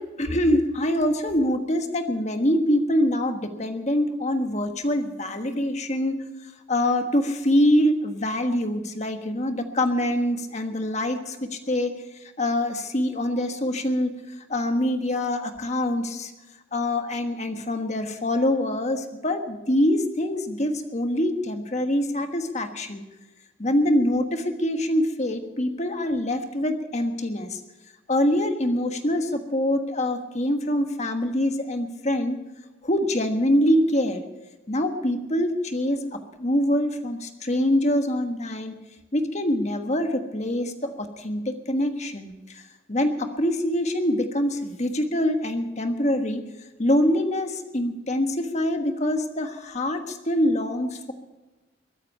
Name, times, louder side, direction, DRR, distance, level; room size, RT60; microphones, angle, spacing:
voice 1, 0.0-6.2 6.7-11.9 12.4-14.1 14.5-16.3 16.7-23.0 23.6-27.6 28.1-32.4 32.8-34.3 34.7-38.8 39.1-46.4 46.8-51.1, left 1 dB, 35° left, 6 dB, 1.4 m, -24 dB
22.0 x 9.4 x 5.5 m, 1.1 s
head